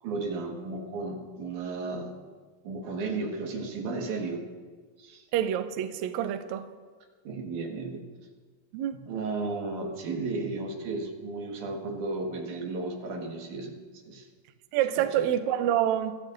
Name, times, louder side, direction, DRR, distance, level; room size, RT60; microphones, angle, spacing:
voice 1, 0.0-2.1 2.6-4.4 5.0-5.2 7.2-8.0 9.1-13.8 14.0-14.3 15.0-15.3, right 3 dB, 60° right, 2.9 m, -34 dB
voice 2, 5.3-6.7 8.7-9.0 14.7-16.2, right 11 dB, 85° right, 1.6 m, -27 dB
24.0 x 14.0 x 2.6 m
omnidirectional pair, 4.1 m